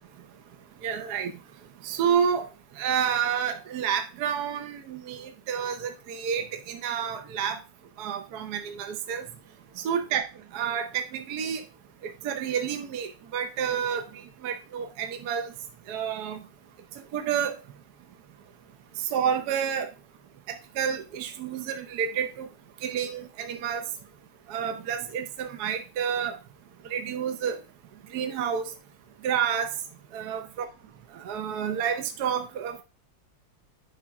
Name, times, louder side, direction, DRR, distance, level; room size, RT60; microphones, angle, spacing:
voice 1, 0.8-1.3 1.8-2.5 2.8-7.6 8.0-9.3 9.8-10.2 10.5-11.6 12.0-15.5 15.9-16.4 17.1-17.6 19.0-19.9 20.5-22.5 22.8-23.8 24.5-26.4 26.9-27.6 28.1-28.7 29.2-29.7 30.1-30.7 31.1-32.8, right 8 dB, 65° right, 7 dB, 1.3 m, -29 dB
8.0 x 5.3 x 3.6 m, 0.30 s
omnidirectional pair, 2.0 m